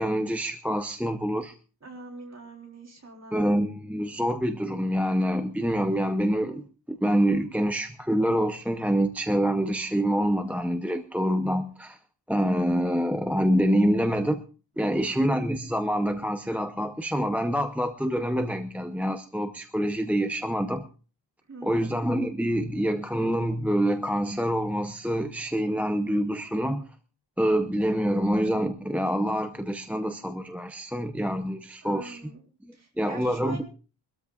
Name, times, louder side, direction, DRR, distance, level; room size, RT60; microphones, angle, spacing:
voice 1, 0.0-1.5 3.3-12.0 12.3-14.4 14.8-20.8 21.6-26.8 27.4-32.2 33.0-33.6, equal, 5° right, 6 dB, 0.6 m, -26 dB
voice 2, 1.8-3.4 14.8-15.1 21.5-21.9 31.8-32.4 32.7-33.6, right 2 dB, 35° right, 0 dB, 3.9 m, -43 dB
24.5 x 13.0 x 2.4 m, 0.36 s
wide cardioid pair, 165°, 46 cm